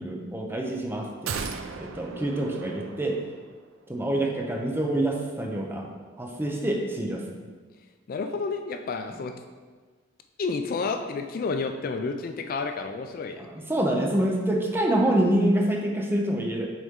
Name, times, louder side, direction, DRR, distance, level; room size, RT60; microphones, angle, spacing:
voice 1, 0.0-1.4 1.8-3.2 3.9-5.9 6.2-7.2 13.4-16.7, right 1 dB, 10° right, 1 dB, 0.6 m, -26 dB
sound 1, 1.3-3.6 3.9-4.0, right 5 dB, 75° right, 0.4 m, -36 dB
voice 2, 8.1-9.3 10.4-13.5, left 4 dB, 45° left, 6 dB, 0.3 m, -30 dB
6.3 x 4.2 x 3.7 m, 1.4 s
head